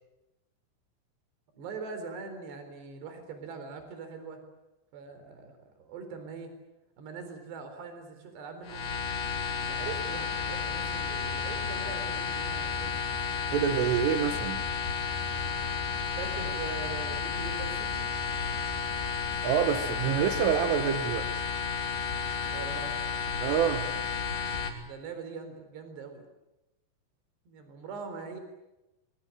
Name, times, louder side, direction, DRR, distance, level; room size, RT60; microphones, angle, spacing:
voice 1, 1.5-4.4 4.9-6.5 7.0-8.9 9.6-13.0 16.1-18.1 22.5-23.0 24.8-26.2 27.5-28.4, right 5 dB, 60° right, 8 dB, 5.9 m, -42 dB
sound 1, 8.6-24.7, left 6 dB, 55° left, 4.8 m, -32 dB
voice 2, 13.5-14.6 19.4-21.3 23.4-23.9, right 9 dB, 80° right, 9 dB, 3.9 m, -27 dB
25.0 x 23.0 x 8.9 m, 0.95 s
omnidirectional pair, 5.7 m